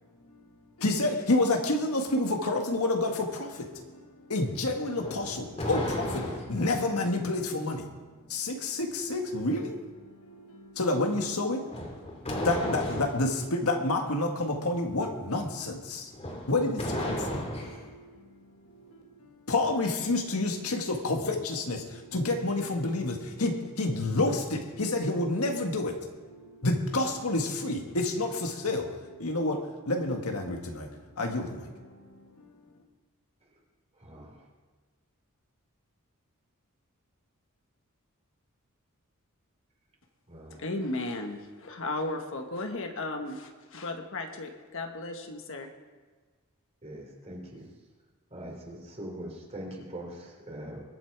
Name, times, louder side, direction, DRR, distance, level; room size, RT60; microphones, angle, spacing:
voice 1, 0.8-4.0 4.3-7.9 8.3-12.0 12.4-16.1 16.5-18.4 18.7-18.8 19.2-32.6, left 2 dB, 85° left, 3 dB, 1.7 m, -29 dB
sound 1, 4.9-6.7 11.7-13.3 16.1-17.9, left 1 dB, 30° left, 2.3 m, -34 dB
voice 2, 34.0-34.4 40.3-40.6 46.8-47.7 48.3-50.8, right 1 dB, 30° right, 0 dB, 3.2 m, -42 dB
voice 3, 40.6-45.7, left 2 dB, 65° left, 4 dB, 1.4 m, -35 dB
21.5 x 8.2 x 4.7 m, 1.4 s
head